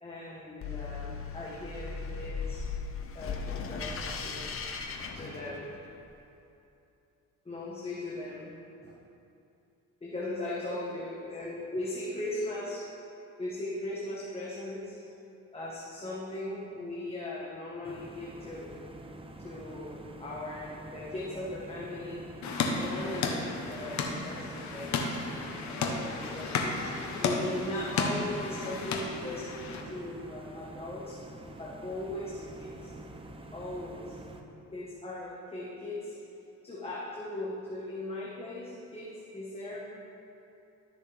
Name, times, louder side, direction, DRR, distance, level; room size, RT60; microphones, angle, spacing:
voice 1, 0.0-2.6 3.1-5.7 7.4-8.5 8.8-8.9 10.0-12.8 13.4-15.1 15.5-18.7 19.4-22.2 22.6-25.0 25.7-26.7 27.2-31.2 31.6-32.9 33.5-34.2 34.7-36.1 36.6-39.9, left 1 dB, 20° left, -6 dB, 1.3 m, -38 dB
sound 1, 0.6-5.9, left 5 dB, 45° left, 0.8 m, -37 dB
sound 2, 17.8-34.4, right 1 dB, 20° right, 0.7 m, -47 dB
sound 3, 22.4-29.8, left 4 dB, 65° left, 1.1 m, -33 dB
12.5 x 6.4 x 3.4 m, 2.8 s
cardioid pair, 90°, 30 cm